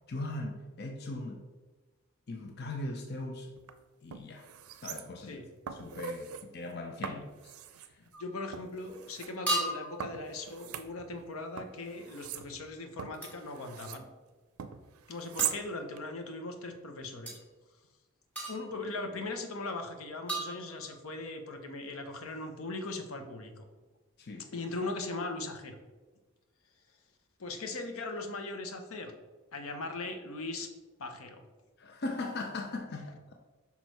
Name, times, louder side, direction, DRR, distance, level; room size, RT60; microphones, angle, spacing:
voice 1, 0.1-1.4 2.3-3.5 4.0-4.5 4.8-5.4 5.7-7.5 7.8-8.0 24.2-24.5 31.8-33.2, left 2 dB, 50° left, 3 dB, 0.6 m, -39 dB
sound 1, 3.6-3.7 4.1-5.3 5.7-6.4 7.0-7.9 8.5-9.3 10.0-11.3 11.6-14.1 14.6-15.6 16.0-16.1, right 9 dB, 85° right, 0.5 m, -40 dB
sound 2, 8.1-8.4 9.5-10.1 13.2-13.4 15.4-15.6 17.3-17.4 18.3-18.9 20.3-21.1, right 2 dB, 5° left, 1.3 m, -35 dB
voice 2, 8.2-14.1 15.1-17.4 18.5-23.7 24.4-25.8 27.4-29.1 29.5-30.7 31.0-31.4, left 2 dB, 75° left, 6 dB, 0.8 m, -39 dB
5.6 x 4.4 x 4.6 m, 1.3 s
head